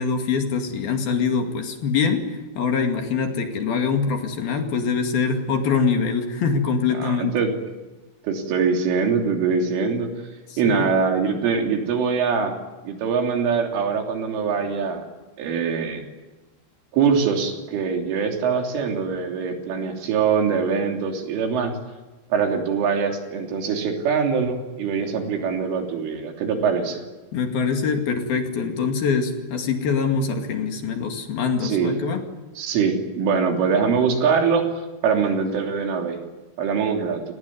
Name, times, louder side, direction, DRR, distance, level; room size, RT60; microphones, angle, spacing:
voice 1, 0.0-2.3 2.6-7.3 10.5-10.9 27.3-32.2, left 5 dB, 55° left, 4 dB, 3.9 m, -24 dB
voice 2, 6.9-7.6 8.2-10.1 10.6-15.0 15.4-16.0 16.9-21.8 22.3-27.0 31.6-32.0 32.6-36.2 36.6-37.2, right 6 dB, 90° right, 3 dB, 5.7 m, -23 dB
28.5 x 19.0 x 9.5 m, 1.2 s
omnidirectional pair, 5.5 m